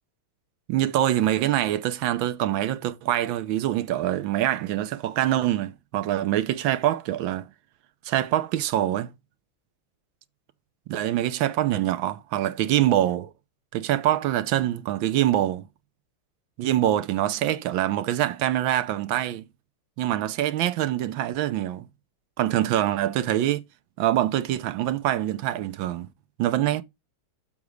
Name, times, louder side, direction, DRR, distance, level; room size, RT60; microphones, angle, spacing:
voice 1, 0.7-7.5 8.0-9.1 10.9-13.3 13.7-15.7 16.6-19.4 20.0-21.9 22.4-23.6 24.0-26.1 26.4-26.8, right 13 dB, 75° right, 1.4 m, -24 dB
7.2 x 3.6 x 6.3 m
omnidirectional pair, 2.3 m